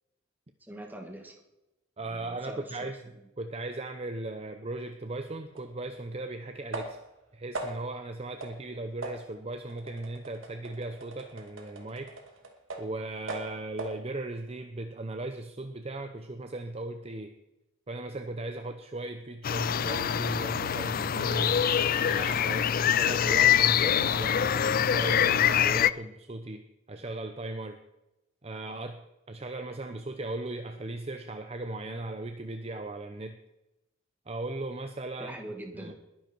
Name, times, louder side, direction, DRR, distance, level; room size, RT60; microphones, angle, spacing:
voice 1, 0.6-1.4 2.0-2.9 35.2-35.9, right 1 dB, 10° right, 3 dB, 2.2 m, -43 dB
voice 2, 2.0-7.0 7.3-12.1 12.8-17.3 17.9-21.6 22.1-26.6 26.9-27.8 28.4-29.0 29.3-33.4 34.3-35.4 35.7-36.0, right 2 dB, 30° right, 7 dB, 0.7 m, -37 dB
sound 1, 5.6-5.7 6.7-7.2 7.5-8.0 8.4-8.6 9.0-13.0 13.3-14.0, right 2 dB, 75° right, 2.3 m, -40 dB
sound 2, 19.4-25.9, left 9 dB, 45° left, 0.4 m, -25 dB
21.0 x 10.5 x 4.6 m, 0.95 s
head